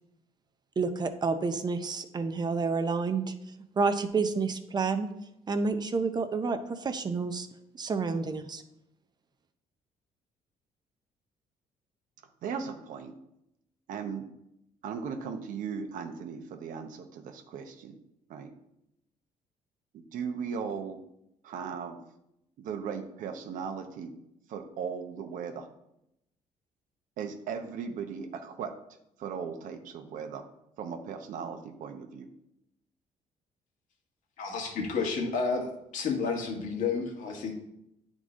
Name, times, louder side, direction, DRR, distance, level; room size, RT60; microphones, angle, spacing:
voice 1, 0.8-3.3 3.8-5.1 5.5-7.5 7.7-8.6, right 4 dB, 30° right, 9 dB, 0.6 m, -29 dB
voice 2, 12.4-13.1 13.9-14.3 14.8-17.9 18.3-18.5 19.9-21.0 21.4-22.0 22.6-24.1 24.5-25.7 27.2-28.7 29.2-30.4 30.8-32.3, right 6 dB, 75° right, 7 dB, 0.9 m, -37 dB
voice 3, 34.4-37.5, left 4 dB, 70° left, 2 dB, 1.5 m, -31 dB
9.4 x 3.8 x 3.7 m, 0.82 s
cardioid pair, 110°, 14 cm